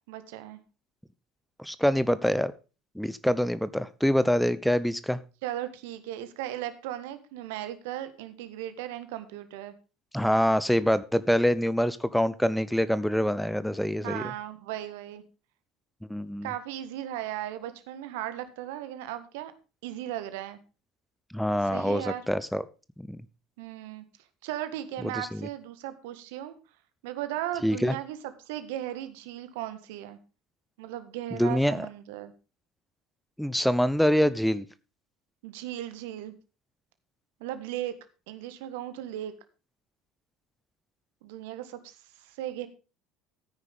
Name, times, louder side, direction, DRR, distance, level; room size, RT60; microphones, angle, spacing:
voice 1, 0.1-0.6 5.4-9.7 14.0-15.2 16.4-19.5 19.8-20.6 21.6-22.2 23.6-24.0 24.4-26.5 27.0-30.2 30.8-32.3 35.4-36.3 37.4-37.9 38.3-39.3 41.2-42.7, right 12 dB, 65° right, 11 dB, 1.6 m, -37 dB
voice 2, 1.6-2.5 3.0-5.2 10.1-14.2 16.1-16.5 21.3-22.6 23.0-23.2 25.2-25.3 27.6-27.9 31.4-31.9 33.4-34.6, equal, ahead, 16 dB, 0.7 m, -25 dB
14.0 x 9.7 x 3.5 m, 0.32 s
figure-of-eight pair, 65°, 0 cm